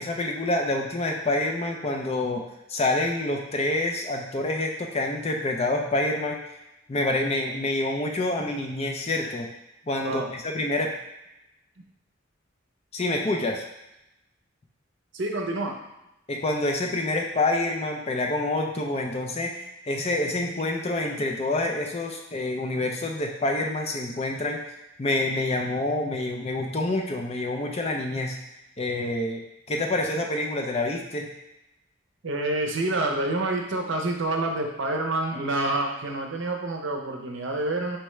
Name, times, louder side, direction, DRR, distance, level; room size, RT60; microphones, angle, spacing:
voice 1, 0.0-2.4 2.7-6.4 6.9-9.5 9.9-10.9 12.9-13.6 16.3-24.6 25.0-28.4 28.8-31.3, left 2 dB, 30° left, 2 dB, 0.5 m, -27 dB
voice 2, 15.1-15.8 32.2-38.0, right 2 dB, 65° right, 2 dB, 0.6 m, -27 dB
4.5 x 3.4 x 3.1 m, 0.91 s
head